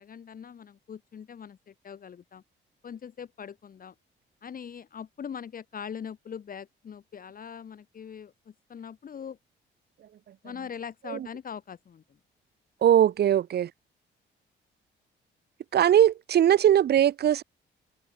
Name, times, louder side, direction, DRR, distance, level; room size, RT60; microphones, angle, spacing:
voice 1, 0.0-2.4 2.8-3.9 4.4-9.4 10.4-12.0, left 7 dB, 45° left, 1.3 m, -41 dB
voice 2, 12.8-13.7 15.7-17.4, right 10 dB, 55° right, 0.8 m, -21 dB
cardioid pair, 90°, 20 cm